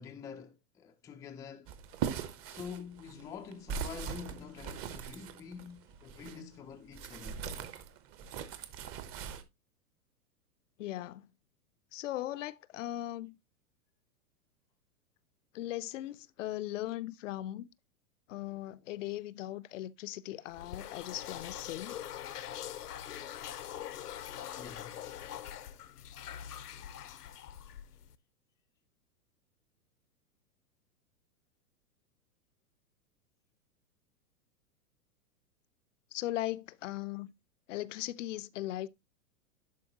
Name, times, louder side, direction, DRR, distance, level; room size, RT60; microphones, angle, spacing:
voice 1, 0.0-1.7 2.4-7.4 21.8-21.9 24.6-25.1 27.0-27.3 27.7-27.8, left 6 dB, 10° left, 0.4 m, -47 dB
sound 1, 1.7-6.4 6.9-9.4, right 7 dB, 30° right, 1.0 m, -40 dB
voice 2, 10.8-11.3 11.9-13.4 15.5-17.7 18.3-22.0 36.1-37.3 37.7-38.9, left 14 dB, 55° left, 0.6 m, -38 dB
sound 2, 20.5-28.2, left 10 dB, 80° left, 0.9 m, -43 dB
11.0 x 4.5 x 2.9 m
hypercardioid pair, 115°, 45 cm